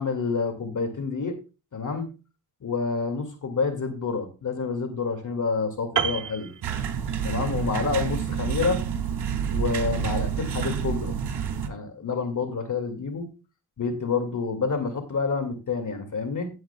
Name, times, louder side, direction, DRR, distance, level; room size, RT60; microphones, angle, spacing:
voice 1, 0.0-1.4 1.7-2.0 2.6-6.5 7.2-8.8 9.5-11.1 11.6-13.3 13.8-16.5, left 4 dB, 45° left, 6 dB, 2.2 m, -28 dB
Piano, 6.0-7.4 7.7-7.9, right 7 dB, 45° right, 1.0 m, -30 dB
sound 1, 6.6-11.7, right 8 dB, 65° right, 1.6 m, -28 dB
16.5 x 7.8 x 2.2 m, 0.30 s
cardioid pair, 85°, 43 cm